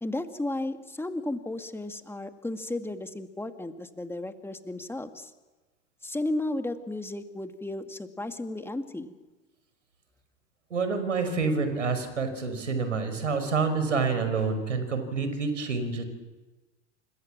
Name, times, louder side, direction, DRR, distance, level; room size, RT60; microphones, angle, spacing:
voice 1, 0.0-5.3 6.0-9.1, left 2 dB, 5° left, 7 dB, 2.3 m, -34 dB
voice 2, 10.7-16.0, right 4 dB, 80° right, 9 dB, 5.2 m, -28 dB
29.5 x 26.0 x 7.5 m, 1.2 s
figure-of-eight pair, 80°, 36 cm